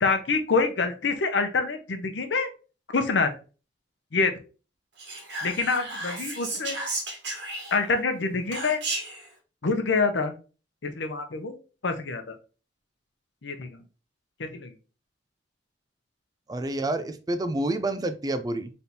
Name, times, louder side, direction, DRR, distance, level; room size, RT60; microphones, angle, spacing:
voice 1, 0.0-2.5 2.9-3.3 4.1-4.3 5.4-6.8 7.7-8.8 9.6-10.3 10.8-11.5 11.8-12.4 13.4-13.7 14.4-14.7, left 4 dB, 85° left, 7 dB, 0.7 m, -26 dB
Whispering, 5.0-8.0 8.5-9.3, right 2 dB, 70° right, 1.4 m, -33 dB
voice 2, 16.5-18.7, right 2 dB, 20° right, 10 dB, 0.4 m, -28 dB
4.2 x 3.4 x 2.8 m, 0.34 s
head